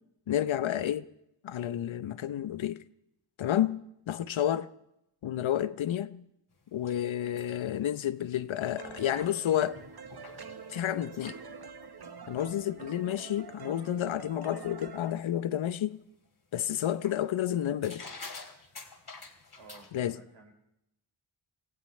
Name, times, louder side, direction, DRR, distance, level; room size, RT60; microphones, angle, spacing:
voice 1, 0.3-1.1 1.4-2.8 3.4-4.7 5.2-6.2 6.7-9.8 10.7-11.4 12.3-16.0 16.5-18.0 19.9-20.2, left 11 dB, 70° left, 0.8 m, -30 dB
sound 1, 6.5-14.7 14.9-15.5 15.9-16.0 16.9-17.4 17.8-19.9, left 3 dB, 50° left, 2.9 m, -50 dB
sound 2, 8.8-15.2, right 6 dB, 50° right, 1.1 m, -46 dB
voice 2, 19.5-20.5, right 4 dB, 70° right, 4.2 m, -56 dB
25.0 x 15.5 x 3.2 m
cardioid pair, 50°, 49 cm